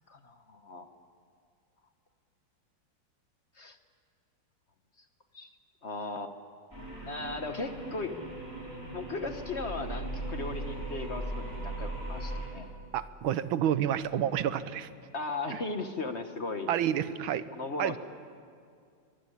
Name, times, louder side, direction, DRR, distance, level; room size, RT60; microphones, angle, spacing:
voice 1, 0.1-0.9 3.6-3.8 5.3-5.5 5.8-6.3 7.1-8.1 8.6-8.7 8.9-12.7 15.1-16.7 17.5-18.0, left 3 dB, 40° left, 7 dB, 1.2 m, -37 dB
sound 1, 6.7-12.5, right 1 dB, 10° right, 5.9 m, -38 dB
voice 2, 12.9-14.9 16.7-17.5 17.8-18.0, right 10 dB, 90° right, 13 dB, 1.7 m, -29 dB
23.5 x 19.5 x 9.9 m, 2.3 s
omnidirectional pair, 2.1 m